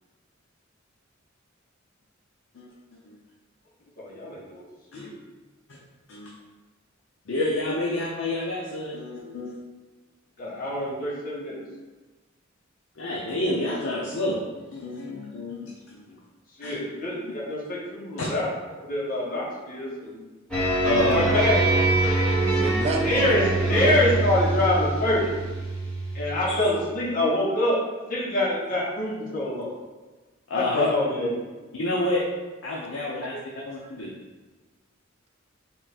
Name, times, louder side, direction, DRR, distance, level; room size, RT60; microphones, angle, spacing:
voice 1, 4.0-4.6 4.9-5.1 10.4-11.6 16.6-18.5 18.8-20.2 21.1-21.6 23.0-23.4 23.7-25.3 26.1-27.8 28.1-29.7 30.5-31.3, left 1 dB, 45° left, -6 dB, 1.0 m, -25 dB
voice 2, 7.3-9.5 13.0-16.2 16.6-16.7 18.2-18.3 20.8-21.4 30.5-30.9 31.8-32.2 32.6-33.3 33.6-34.1, left 2 dB, 70° left, -4 dB, 0.6 m, -28 dB
sound 1, 20.5-26.7, right 2 dB, 5° left, 1.0 m, -24 dB
voice 3, 21.5-22.0 22.4-24.0 33.3-33.4, right 2 dB, 30° right, 1 dB, 0.3 m, -31 dB
3.7 x 2.4 x 4.1 m, 1.2 s
head